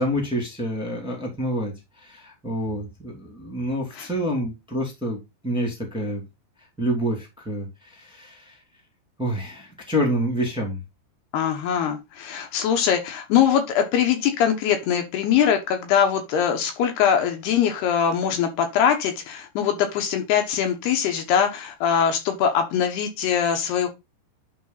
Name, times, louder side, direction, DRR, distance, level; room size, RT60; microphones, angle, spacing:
voice 1, 0.0-6.2 6.8-8.6 9.2-10.8, equal, ahead, 1.3 m, -28 dB
voice 2, 11.3-23.9, left 8 dB, 70° left, 3.0 m, -22 dB
11.0 x 3.9 x 4.0 m
omnidirectional pair, 5.1 m